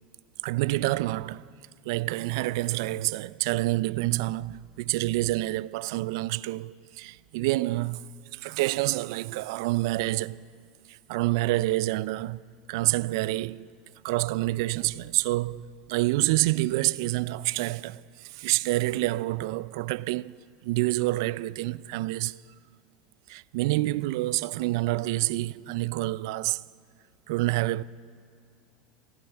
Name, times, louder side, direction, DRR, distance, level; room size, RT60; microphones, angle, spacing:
voice 1, 0.4-1.4 1.9-8.1 8.3-10.4 11.1-12.4 12.7-13.7 14.0-20.4 20.6-22.4 23.3-26.6 27.3-27.8, right 18 dB, 75° right, 0.3 m, -27 dB
15.5 x 9.1 x 9.7 m
supercardioid pair, 135°, 2 cm